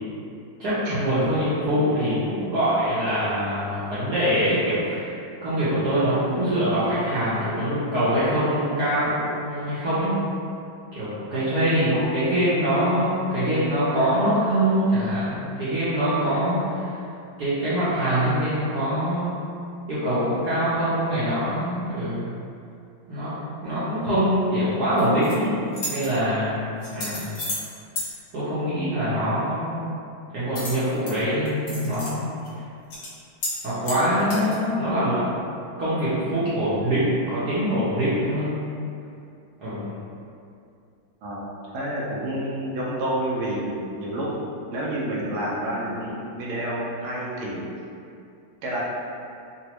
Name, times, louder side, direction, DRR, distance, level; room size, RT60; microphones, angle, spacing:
voice 1, 0.6-5.2 5.4-10.2 10.9-16.9 17.4-19.4 19.9-22.3 23.1-23.3 23.6-25.5 25.9-27.3 28.3-29.8 30.3-32.3 33.6-35.2 35.8-38.5 39.6-39.9, equal, 65° right, -12 dB, 1.1 m, -24 dB
sound 1, 25.0-25.3 25.7-26.1 26.8-27.7 28.0-28.1 30.6-31.1 31.5-32.1 32.5-32.6 32.9-33.1 33.4-33.6 33.8-34.6, left 1 dB, 60° left, 1.2 m, -32 dB
voice 2, 41.2-44.3 44.7-47.7 48.6-48.8, right 1 dB, 80° right, -5 dB, 1.4 m, -29 dB
3.9 x 2.2 x 2.9 m, 2.5 s
omnidirectional pair, 2.3 m